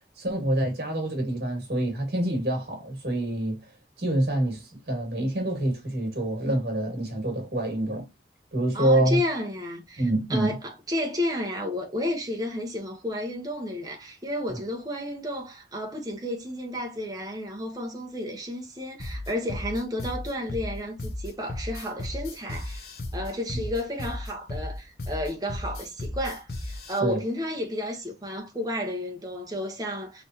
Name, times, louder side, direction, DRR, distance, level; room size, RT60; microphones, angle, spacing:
voice 1, 0.2-3.6 4.0-8.1 8.5-9.2 10.0-10.6 27.0-27.2, right 1 dB, 60° right, 2.2 m, -26 dB
voice 2, 8.7-22.9 23.1-30.2, left 1 dB, 20° right, 1.1 m, -32 dB
sound 1, 19.0-27.0, left 1 dB, 60° left, 0.9 m, -34 dB
4.2 x 3.3 x 2.9 m
head